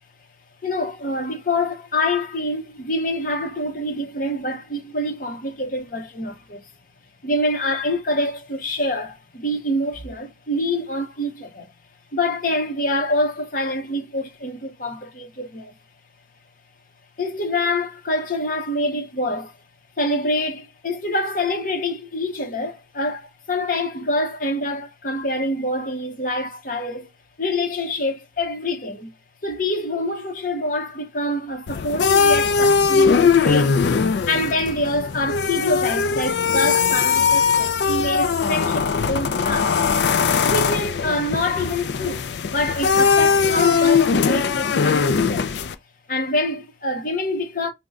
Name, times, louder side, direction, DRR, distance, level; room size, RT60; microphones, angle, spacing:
voice 1, 0.6-6.7 7.2-11.7 12.1-15.7 17.2-19.6 20.0-27.1 27.4-29.1 29.4-33.8 34.3-39.8 40.5-45.5 46.1-47.7, left 1 dB, 45° left, 0.9 m, -26 dB
sound 1, 31.7-45.7, left 5 dB, 65° left, 0.4 m, -20 dB
3.8 x 2.1 x 3.5 m
head